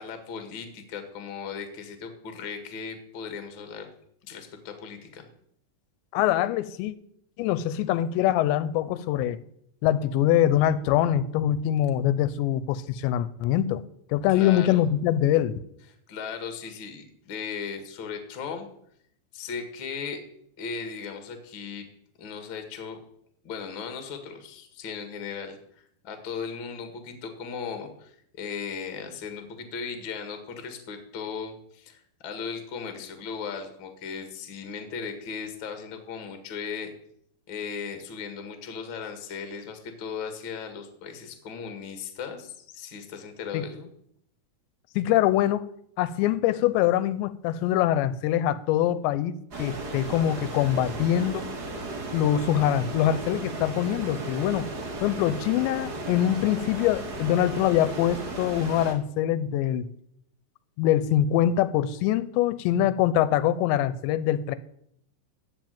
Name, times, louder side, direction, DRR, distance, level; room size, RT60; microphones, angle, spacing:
voice 1, 0.0-3.9 4.2-5.2 14.3-14.9 16.1-18.6 19.3-20.2 20.6-21.8 22.2-23.0 23.4-36.9 37.5-43.9, left 6 dB, 50° left, 1.5 m, -37 dB
voice 2, 6.1-6.9 7.4-9.4 9.8-13.8 14.1-15.6 43.5-43.7 45.0-45.7 46.0-51.5 52.1-54.7 55.0-59.9 60.8-64.6, left 11 dB, 90° left, 2.9 m, -24 dB
sound 1, 49.5-58.9, right 2 dB, 65° right, 0.9 m, -35 dB
14.5 x 5.0 x 9.2 m
omnidirectional pair, 5.0 m